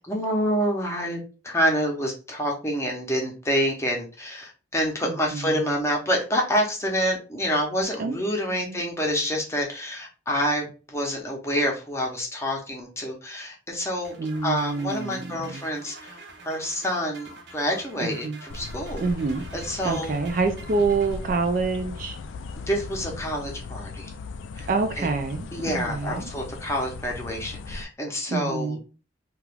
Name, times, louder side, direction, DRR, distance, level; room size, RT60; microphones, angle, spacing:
voice 1, 0.0-14.2 14.4-16.2 16.4-19.0 19.5-20.2 22.7-24.1 24.5-24.7 25.0-25.1 25.5-28.8, equal, 15° left, 0.7 m, -27 dB
voice 2, 5.1-5.6 8.0-8.1 8.5-8.8 14.2-15.6 18.0-18.4 19.0-19.4 19.8-22.2 24.7-26.3 28.3-28.8, right 4 dB, 45° right, 0.4 m, -27 dB
sound 1, 14.0-21.8, right 2 dB, 60° right, 0.9 m, -47 dB
sound 2, 18.5-27.8, left 3 dB, 75° left, 0.3 m, -38 dB
2.9 x 2.4 x 3.3 m
head